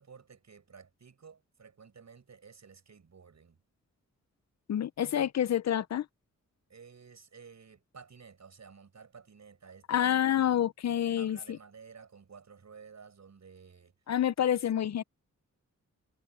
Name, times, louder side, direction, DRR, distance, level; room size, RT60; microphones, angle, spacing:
voice 1, 0.0-3.6 6.7-10.2 11.2-13.9 14.6-15.1, right 5 dB, 65° right, 7.4 m, -53 dB
voice 2, 4.7-6.1 9.9-11.6 14.1-15.0, left 10 dB, 60° left, 0.5 m, -28 dB
wide cardioid pair, 100°, 30 cm